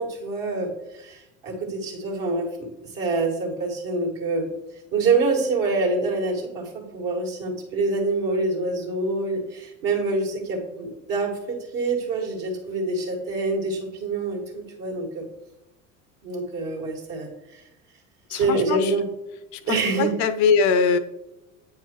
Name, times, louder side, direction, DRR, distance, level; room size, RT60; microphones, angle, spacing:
voice 1, 0.0-4.5 4.9-15.3 16.2-17.6 18.3-19.0 19.7-20.2, right 3 dB, 55° right, -1 dB, 2.1 m, -26 dB
voice 2, 18.3-19.0 19.5-21.0, left 5 dB, 50° left, 11 dB, 0.5 m, -22 dB
8.5 x 4.7 x 3.0 m, 0.95 s
hypercardioid pair, 75°, 40 cm